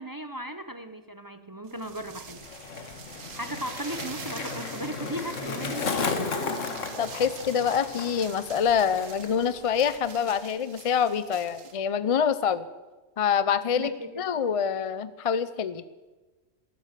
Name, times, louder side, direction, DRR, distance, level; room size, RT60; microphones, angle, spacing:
voice 1, 0.0-2.4 3.3-6.2 13.8-14.1, right 1 dB, 25° right, 9 dB, 0.5 m, -37 dB
sound 1, 1.7-11.8, right 6 dB, 75° right, 1.5 m, -45 dB
Skateboard, 1.9-9.4 9.7-10.2, left 4 dB, 70° left, 1.7 m, -34 dB
voice 2, 7.0-12.7 13.2-13.9 14.2-15.8, left 7 dB, 50° left, 14 dB, 0.4 m, -26 dB
14.5 x 13.0 x 6.6 m, 1.2 s
omnidirectional pair, 1.3 m